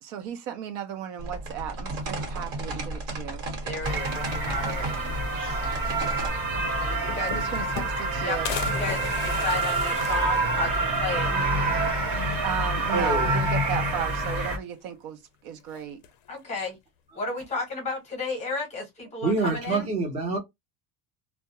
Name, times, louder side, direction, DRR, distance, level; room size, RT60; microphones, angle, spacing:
voice 1, 0.0-3.4 6.6-8.5 12.4-16.0, right 8 dB, 70° right, 0.7 m, -35 dB
sound 1, 1.2-6.3, right 2 dB, 55° right, 1.2 m, -33 dB
voice 2, 3.6-5.1 6.9-7.3 8.2-11.3 16.3-16.7 17.1-19.9, left 3 dB, 15° left, 0.8 m, -33 dB
sound 2, 3.8-14.6, right 2 dB, 35° right, 0.9 m, -27 dB
sound 3, 6.8-8.1 8.5-11.1 11.5-11.6 11.8-11.9 13.1-13.6 13.9-14.7 15.7-16.3, left 10 dB, 45° left, 0.4 m, -37 dB
voice 3, 12.9-13.4 17.1-17.2 19.2-20.4, right 3 dB, 15° right, 0.6 m, -26 dB
2.3 x 2.1 x 2.8 m
cardioid pair, 170°, 40 cm